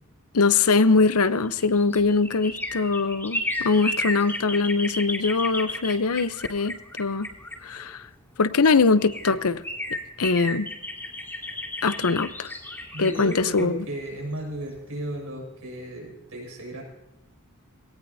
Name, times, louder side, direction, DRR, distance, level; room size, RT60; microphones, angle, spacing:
voice 1, 0.3-7.3 7.6-8.0 8.4-9.6 10.2-10.7 11.8-12.5 13.0-13.8, left 4 dB, 75° left, 13 dB, 0.8 m, -22 dB
sound 1, 1.3-8.1 8.7-8.8 9.0-14.8 15.1-15.2, left 1 dB, 10° left, 2.3 m, -33 dB
voice 2, 12.9-16.8, right 1 dB, 70° right, -1 dB, 6.8 m, -34 dB
19.0 x 18.0 x 2.8 m, 0.94 s
head